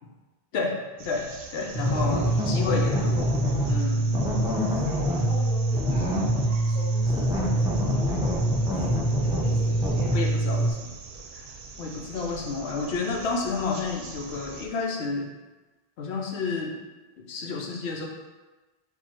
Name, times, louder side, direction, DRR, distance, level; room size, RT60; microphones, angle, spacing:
voice 1, 0.5-3.3 3.7-4.1 10.1-10.9 11.3-11.5 11.8-15.3 16.0-16.8 17.2-18.1, left 4 dB, 90° left, 0 dB, 0.9 m, -30 dB
sound 1, 1.0-14.7, right 4 dB, 65° right, 0.7 m, -43 dB
voice 2, 1.6-2.7 4.2-6.2 6.6-10.3, left 2 dB, 30° left, -12 dB, 1.0 m, -42 dB
sound 2, 1.7-10.7, right 1 dB, 5° right, 0.4 m, -24 dB
4.6 x 2.4 x 4.3 m, 1.2 s
omnidirectional pair, 1.0 m